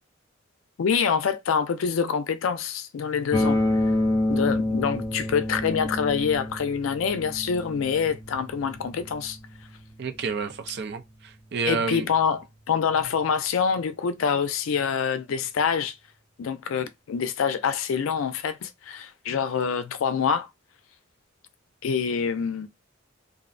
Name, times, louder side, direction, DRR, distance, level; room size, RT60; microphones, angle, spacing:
voice 1, 0.8-3.6 4.3-9.4 11.7-16.0 16.4-20.5 21.8-22.7, left 6 dB, 85° left, 0.4 m, -26 dB
sound 1, 3.3-13.2, left 1 dB, 20° left, 0.5 m, -30 dB
voice 2, 10.0-12.1, right 4 dB, 60° right, 0.5 m, -30 dB
2.5 x 2.0 x 2.5 m
head